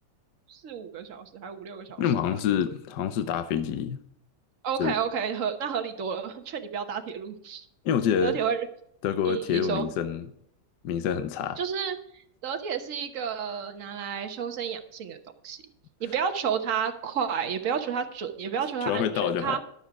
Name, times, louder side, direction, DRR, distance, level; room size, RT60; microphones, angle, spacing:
voice 1, 0.5-2.0 4.6-7.7 8.2-8.7 9.2-9.9 11.6-15.6 16.0-19.6, right 7 dB, 50° right, 1.3 m, -31 dB
voice 2, 2.0-4.0 4.8-5.0 7.8-8.4 9.0-10.3 10.8-11.6 18.9-19.6, left 8 dB, 70° left, 1.3 m, -27 dB
12.0 x 7.4 x 4.8 m
omnidirectional pair, 2.0 m